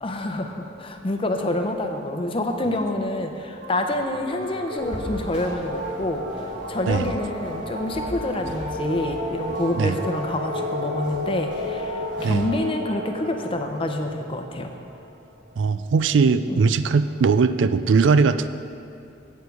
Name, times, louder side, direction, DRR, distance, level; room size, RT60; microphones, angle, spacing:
voice 1, 0.0-6.3 6.7-14.7 16.5-16.6, left 1 dB, 30° left, 4 dB, 0.7 m, -27 dB
sound 1, 3.6-15.4, equal, 65° right, 1.4 m, -33 dB
sound 2, 4.8-12.3, equal, 5° right, 2.5 m, -41 dB
voice 2, 15.6-18.5, right 5 dB, 90° right, 12 dB, 0.4 m, -19 dB
9.0 x 8.2 x 4.7 m, 2.5 s
head